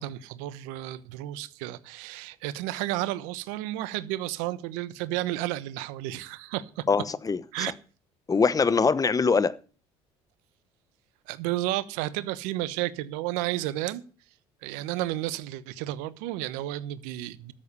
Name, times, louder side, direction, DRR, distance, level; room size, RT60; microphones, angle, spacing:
voice 1, 0.0-6.8 7.5-7.7 11.3-14.0 14.6-17.5, right 15 dB, 80° right, 1.0 m, -32 dB
voice 2, 6.9-7.7 8.3-9.6, left 5 dB, 25° left, 1.0 m, -23 dB
13.0 x 7.6 x 6.8 m
supercardioid pair, 75°, 13 cm